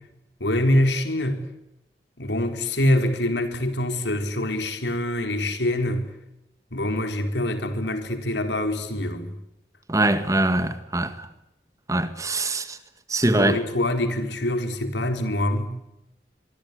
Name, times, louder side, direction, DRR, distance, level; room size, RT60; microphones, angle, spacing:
voice 1, 0.4-1.4 2.2-6.0 6.7-9.3 13.2-15.7, left 1 dB, 90° left, 4.2 m, -25 dB
voice 2, 9.9-11.3 11.9-12.8 13.1-13.6, right 2 dB, 20° right, 1.8 m, -23 dB
25.0 x 24.5 x 8.4 m
head